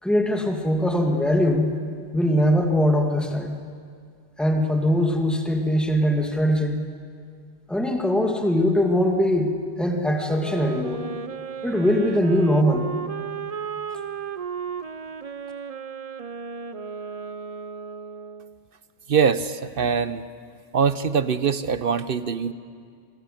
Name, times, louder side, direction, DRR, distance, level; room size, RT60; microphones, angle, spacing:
voice 1, 0.0-1.8 2.1-3.6 4.4-6.8 7.7-9.5 9.8-11.0 11.6-12.9, equal, ahead, 3 dB, 2.1 m, -21 dB
Wind instrument woodwind instrument, 10.2-18.6, right 6 dB, 40° right, 0.7 m, -34 dB
voice 2, 19.1-20.2 20.7-22.5, right 6 dB, 60° right, 13 dB, 1.0 m, -23 dB
27.5 x 23.5 x 7.9 m, 2.1 s
omnidirectional pair, 1.1 m